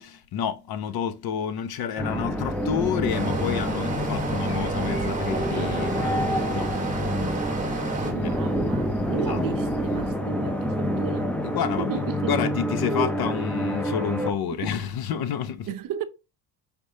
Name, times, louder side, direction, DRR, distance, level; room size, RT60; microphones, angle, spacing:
voice 1, 0.0-7.7 8.2-8.4 9.3-9.4 11.4-12.0 12.3-15.7, left 8 dB, 55° left, 0.8 m, -30 dB
sound 1, 2.0-14.3, equal, 5° left, 0.6 m, -27 dB
sound 2, 2.3-10.1, right 3 dB, 30° left, 2.1 m, -40 dB
Stream, 3.1-8.1, right 4 dB, 15° right, 1.6 m, -31 dB
voice 2, 8.0-11.3 11.8-12.4 14.5-14.8 15.7-16.1, right 10 dB, 45° right, 0.6 m, -34 dB
5.0 x 3.2 x 2.7 m
cardioid pair, 110°, 46 cm